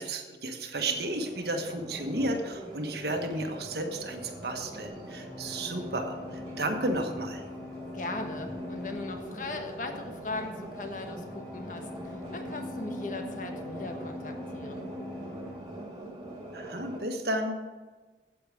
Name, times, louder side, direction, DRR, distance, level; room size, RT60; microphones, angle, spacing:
voice 1, 0.0-7.4 16.5-17.6, right 1 dB, 65° right, 4 dB, 1.3 m, -33 dB
sound 1, 0.8-17.0, right 1 dB, 25° right, 2.1 m, -43 dB
sound 2, 4.4-15.6, left 3 dB, 15° left, 1.6 m, -43 dB
voice 2, 7.9-14.9, left 2 dB, 45° left, 4 dB, 1.2 m, -39 dB
8.5 x 8.4 x 6.3 m, 1.3 s
head